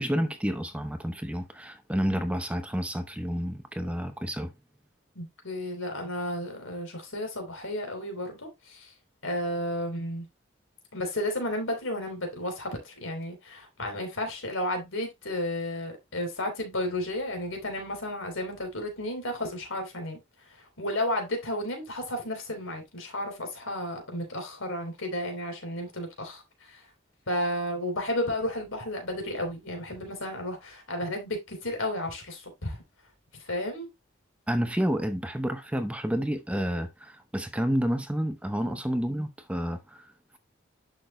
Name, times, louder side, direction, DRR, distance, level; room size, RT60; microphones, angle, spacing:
voice 1, 0.0-4.5 34.5-40.4, equal, 5° right, 0.7 m, -30 dB
voice 2, 5.2-8.9 9.2-10.3 10.9-20.2 20.8-26.4 27.3-32.8 33.5-33.9 38.6-38.8, left 1 dB, 85° left, 3.6 m, -32 dB
11.5 x 6.0 x 2.2 m
head